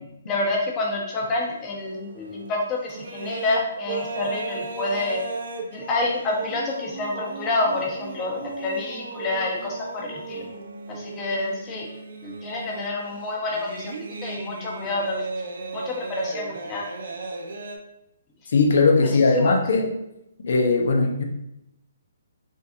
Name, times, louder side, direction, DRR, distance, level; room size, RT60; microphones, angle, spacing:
voice 1, 0.3-5.2 5.7-10.4 10.9-11.9 12.2-13.9 14.2-15.2 15.7-16.8 19.4-19.5, left 2 dB, 25° left, -2 dB, 1.2 m, -28 dB
sound 1, 1.4-17.8, right 3 dB, 65° right, 0.7 m, -36 dB
voice 2, 18.5-19.9 20.4-21.2, left 3 dB, 65° left, 2 dB, 0.9 m, -19 dB
5.4 x 3.3 x 2.7 m, 0.83 s
figure-of-eight pair, 135°, 0 cm